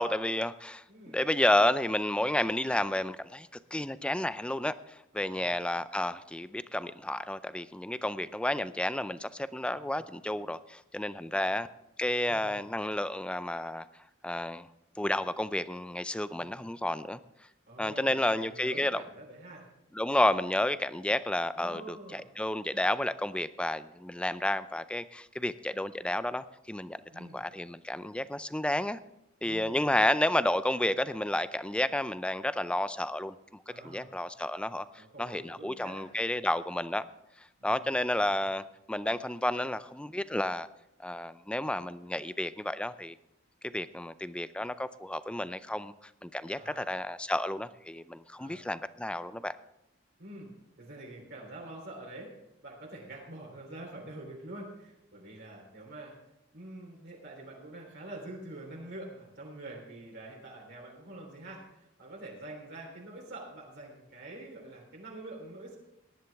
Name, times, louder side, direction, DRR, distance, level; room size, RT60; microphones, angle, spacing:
voice 1, 0.0-11.7 12.0-13.9 14.2-14.7 15.0-17.2 17.8-19.0 19.9-29.0 29.4-33.4 33.8-37.0 37.6-40.7 41.0-43.2 43.6-45.9 46.2-49.5, left 1 dB, 5° left, 14 dB, 0.4 m, -31 dB
voice 2, 5.1-5.6 9.7-10.1 12.3-12.6 16.4-16.6 17.7-19.6 21.5-22.2 27.1-27.4 29.4-29.8 33.7-34.1 34.9-36.1 37.6-37.9 46.5-46.8 48.3-48.7 50.2-50.5 50.8-52.3 52.6-56.1 56.5-65.8, right 2 dB, 60° right, -2 dB, 3.4 m, -46 dB
18.5 x 11.0 x 3.5 m, 0.86 s
head